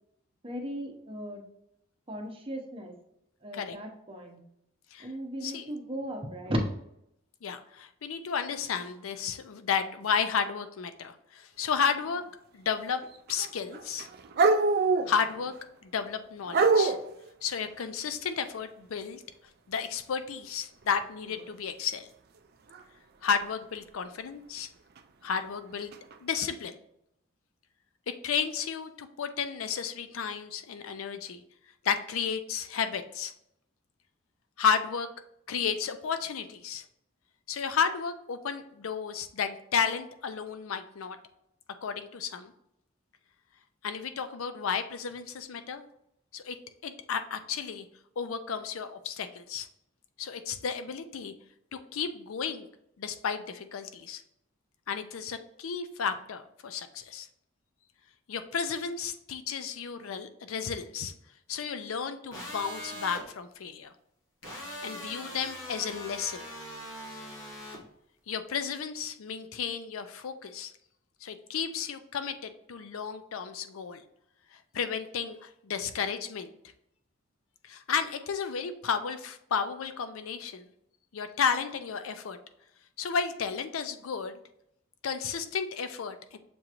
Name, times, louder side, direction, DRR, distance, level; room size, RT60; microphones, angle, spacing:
voice 1, 0.4-1.4 2.1-2.9 3.4-4.4 5.0-6.6, equal, 25° right, 2 dB, 0.8 m, -36 dB
voice 2, 7.4-12.2 12.5-13.0 13.3-14.1 15.1-15.5 15.8-17.0 17.4-19.2 19.7-22.1 23.2-24.7 25.2-25.9 26.2-26.8 28.1-31.4 31.8-33.3 34.6-35.1 35.5-36.8 37.5-41.2 41.8-42.5 43.8-45.8 46.3-46.6 46.8-47.9 48.2-49.7 50.2-51.3 51.7-52.7 53.0-54.2 54.9-57.3 58.3-61.1 61.5-63.9 64.8-66.4 68.3-70.7 71.2-74.0 74.5-76.5 77.6-80.7 81.1-82.4 83.0-84.4 85.0-86.4, left 6 dB, 85° left, 9 dB, 0.5 m, -32 dB
sound 1, 13.0-13.5 13.7-15.5 16.5-17.1 21.3-21.5 22.7-22.8 25.0-25.1 25.9-26.1, right 4 dB, 50° right, 0.4 m, -25 dB
sound 2, 62.3-63.2 64.4-67.8, equal, 65° left, 1.2 m, -41 dB
6.9 x 2.9 x 2.5 m, 0.77 s
head